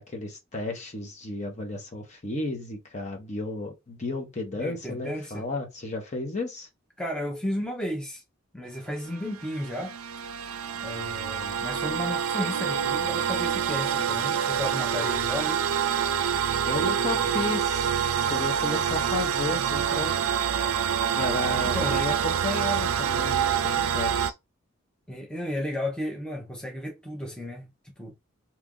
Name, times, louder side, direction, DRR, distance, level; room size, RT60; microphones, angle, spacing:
voice 1, 0.0-6.7 16.6-17.9 18.3-20.2 21.2-24.3, left 2 dB, 35° left, 0.9 m, -33 dB
voice 2, 4.5-5.5 7.0-8.2 8.5-10.0 10.8-15.7 16.9-17.5 21.5-22.0 25.1-27.7 28.0-28.1, left 1 dB, 5° left, 0.6 m, -34 dB
sound 1, 9.1-24.3, right 8 dB, 90° right, 0.4 m, -26 dB
2.9 x 2.5 x 3.6 m
head